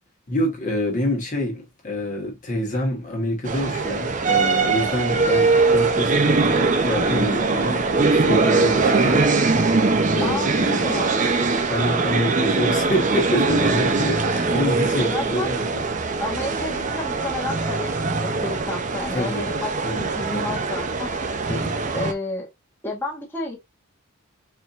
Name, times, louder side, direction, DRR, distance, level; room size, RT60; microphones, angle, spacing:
voice 1, 0.3-11.0 11.7-15.8 19.1-19.4 19.8-20.6 21.5-21.8, left 1 dB, 35° left, 1.3 m, -27 dB
sound 1, 3.5-22.1, right 3 dB, 35° right, 0.7 m, -21 dB
voice 2, 10.2-10.5 10.8-11.2 14.9-15.5 16.2-21.1 21.9-22.5 22.8-23.6, left 2 dB, 10° left, 1.4 m, -31 dB
4.5 x 4.1 x 2.5 m
head